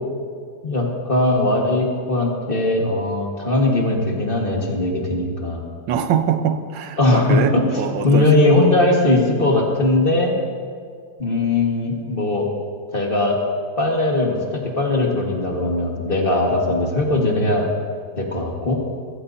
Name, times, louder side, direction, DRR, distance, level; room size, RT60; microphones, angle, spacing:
voice 1, 0.6-5.6 7.0-10.3 11.2-12.5 12.9-13.4 13.8-17.7 18.2-18.8, left 2 dB, 30° left, -1 dB, 1.7 m, -19 dB
voice 2, 5.9-8.5, right 8 dB, 90° right, 8 dB, 1.6 m, -23 dB
22.0 x 14.5 x 2.7 m, 2.1 s
omnidirectional pair, 2.1 m